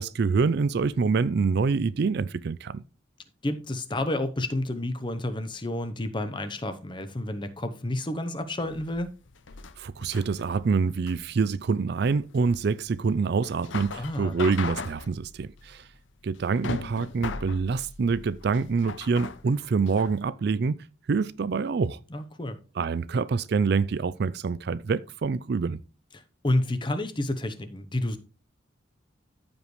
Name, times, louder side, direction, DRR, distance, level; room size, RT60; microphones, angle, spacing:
voice 1, 0.0-2.8 9.8-15.9 16.2-20.8 21.1-22.0 22.8-25.8, right 4 dB, 55° right, 0.4 m, -26 dB
voice 2, 3.4-9.1 14.0-14.3 22.1-22.6 26.1-28.2, left 1 dB, 25° left, 0.8 m, -30 dB
sound 1, 8.6-20.2, left 4 dB, 65° left, 0.7 m, -39 dB
14.0 x 5.2 x 3.2 m
head